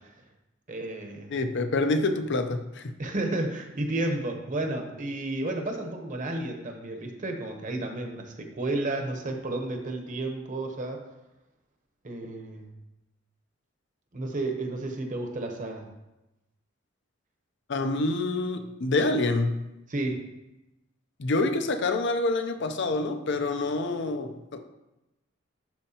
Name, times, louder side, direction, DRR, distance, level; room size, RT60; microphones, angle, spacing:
voice 1, 0.7-1.3 3.0-11.0 12.0-12.7 14.1-15.9 19.9-20.2, right 2 dB, 40° right, 3 dB, 1.0 m, -32 dB
voice 2, 1.3-2.9 17.7-19.7 21.2-24.7, left 2 dB, 60° left, 8 dB, 0.6 m, -27 dB
12.0 x 4.4 x 2.9 m, 0.96 s
head